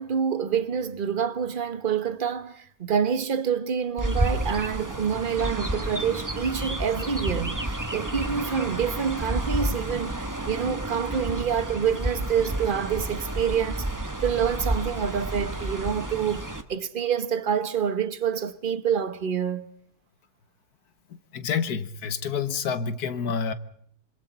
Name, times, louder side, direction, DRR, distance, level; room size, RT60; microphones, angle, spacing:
voice 1, 0.0-19.7, right 7 dB, 35° right, 1.2 m, -27 dB
Chirp tweet, 4.0-16.6, right 1 dB, 10° right, 1.3 m, -30 dB
voice 2, 21.1-23.5, left 6 dB, 70° left, 1.7 m, -28 dB
26.0 x 25.5 x 4.2 m
omnidirectional pair, 1.7 m